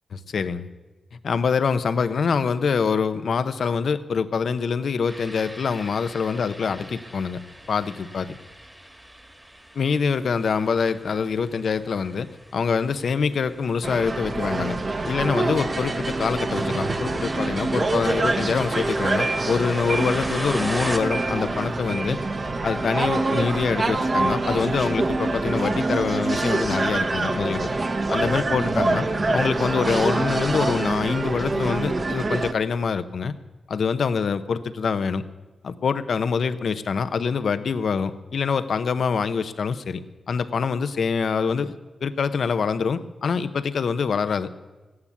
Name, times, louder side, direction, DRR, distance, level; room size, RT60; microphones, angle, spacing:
voice 1, 0.1-0.7 1.2-7.4 7.7-8.4 9.7-14.8 15.0-22.2 22.6-27.7 28.1-29.1 29.3-33.3 33.7-35.2 35.6-40.0 40.3-41.7 42.0-44.5, left 5 dB, 75° left, 12 dB, 0.8 m, -25 dB
sound 1, 5.1-21.0, right 1 dB, 15° right, 1.5 m, -40 dB
sound 2, 13.8-32.5, right 2 dB, 45° right, 1.2 m, -25 dB
14.5 x 9.6 x 8.4 m, 1.2 s
cardioid pair, 65°, 0 cm